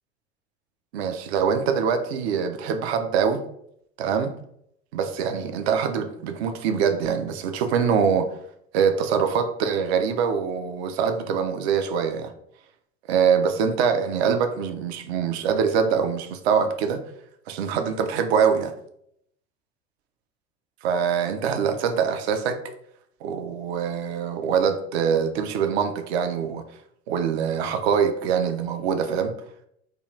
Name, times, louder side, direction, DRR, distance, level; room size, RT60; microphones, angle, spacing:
voice 1, 0.9-3.4 4.0-4.3 4.9-8.3 8.7-12.3 13.1-17.0 17.5-18.7 20.8-22.6 23.2-26.6 27.1-29.3, right 6 dB, 65° right, 8 dB, 0.5 m, -24 dB
2.6 x 2.3 x 3.1 m, 0.72 s
figure-of-eight pair, 70°, 35 cm